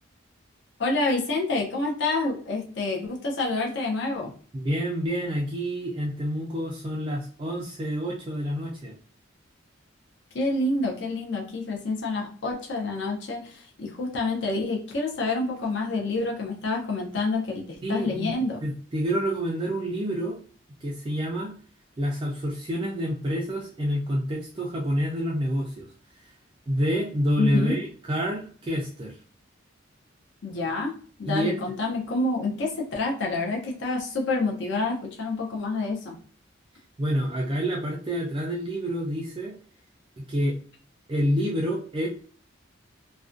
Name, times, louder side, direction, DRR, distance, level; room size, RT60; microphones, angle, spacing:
voice 1, 0.8-4.3 10.3-18.6 27.4-27.8 30.4-30.9 31.2-36.2, left 2 dB, 60° left, 0 dB, 0.5 m, -28 dB
voice 2, 4.5-8.9 17.8-18.3 18.6-20.4 20.8-21.5 22.0-25.9 26.2-26.3 26.7-29.2 31.3-31.7 37.0-39.5 40.2-40.6 41.1-42.1, equal, 25° right, -1 dB, 0.3 m, -28 dB
2.4 x 2.1 x 2.4 m, 0.43 s
head